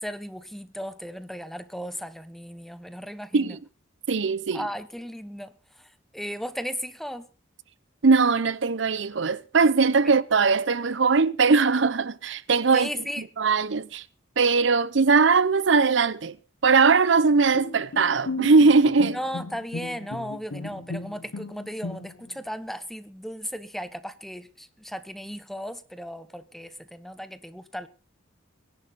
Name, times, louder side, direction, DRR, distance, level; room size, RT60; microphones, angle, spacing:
voice 1, 0.0-3.6 4.5-5.5 5.8-7.3 12.7-13.2 19.1-27.9, equal, ahead, 1.0 m, -36 dB
voice 2, 4.1-4.6 8.0-12.9 13.4-14.0 14.4-16.4 16.6-19.2, right 4 dB, 70° right, 0.6 m, -20 dB
Bowed string instrument, 17.5-22.4, left 3 dB, 85° left, 0.8 m, -36 dB
22.5 x 11.0 x 4.0 m
head